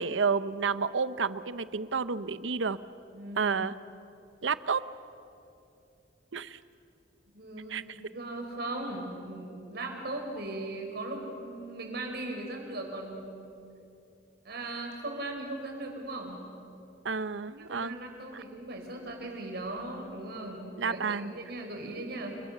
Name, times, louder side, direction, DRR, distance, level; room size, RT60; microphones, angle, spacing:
voice 1, 0.0-2.8 3.4-3.7 4.4-4.8 6.3-6.6 7.7-7.8 17.0-18.0 18.3-18.4 20.8-21.3, right 5 dB, 90° right, 15 dB, 0.7 m, -30 dB
voice 2, 3.1-3.6 7.3-13.5 14.4-16.4 17.6-22.4, right 2 dB, 60° right, 3 dB, 4.5 m, -38 dB
29.5 x 22.0 x 6.7 m, 2.7 s
head